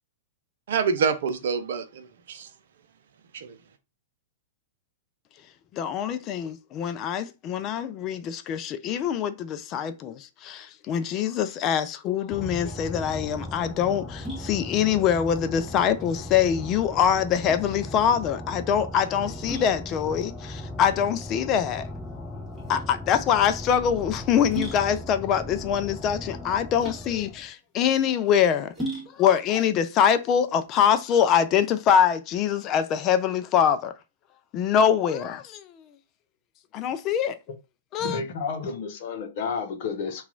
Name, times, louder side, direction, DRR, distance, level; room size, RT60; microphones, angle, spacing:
voice 1, 0.7-2.5 3.3-3.6, right 6 dB, 65° right, 0.5 m, -27 dB
voice 2, 5.7-21.9 22.7-28.7 29.2-33.9 34.5-35.6 36.7-37.4 37.9-38.2, left 8 dB, 35° left, 0.4 m, -24 dB
sound 1, 12.3-27.5, left 1 dB, 10° left, 0.8 m, -38 dB
sound 2, 12.6-31.2, right 1 dB, 5° right, 1.5 m, -41 dB
voice 3, 38.0-40.2, left 5 dB, 55° left, 0.8 m, -31 dB
2.9 x 2.4 x 3.7 m
hypercardioid pair, 105°, 0 cm